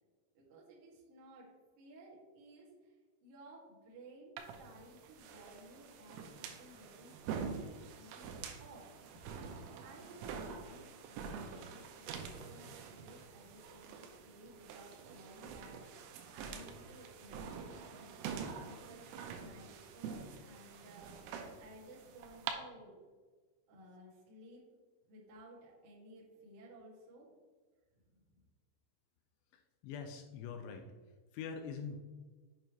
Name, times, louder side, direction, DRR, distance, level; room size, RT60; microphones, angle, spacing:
voice 1, 0.3-2.9 3.2-7.7 7.9-9.3 9.8-21.3 21.6-23.0 23.7-24.6 25.1-27.3 28.1-28.4, right 1 dB, 60° right, -5 dB, 1.7 m, -57 dB
wooden floor old creaking footsteps walking, 4.4-22.5, right 6 dB, 85° right, 3.3 m, -46 dB
voice 2, 29.8-30.9 31.3-32.0, left 6 dB, 85° left, 6 dB, 2.6 m, -43 dB
7.9 x 6.7 x 3.0 m, 1.4 s
omnidirectional pair, 5.8 m